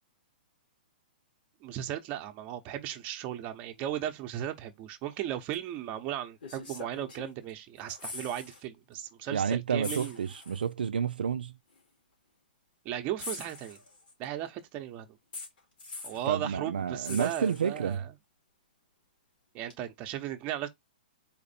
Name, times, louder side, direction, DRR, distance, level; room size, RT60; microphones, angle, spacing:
voice 1, 1.6-10.2 12.8-13.8 14.2-15.1 16.0-18.1 19.5-20.7, right 11 dB, 35° right, 0.9 m, -36 dB
sound 1, 5.5-5.7 6.4-7.5 7.8-8.6 8.9-9.1 9.8-10.7 11.7-11.8 13.2-14.2 15.3-16.3 17.0-18.0 19.7-19.8, left 3 dB, 80° left, 2.7 m, -43 dB
voice 2, 9.3-11.5 16.3-18.0, right 7 dB, 85° right, 0.4 m, -30 dB
4.3 x 2.6 x 4.1 m
hypercardioid pair, 130°, 5 cm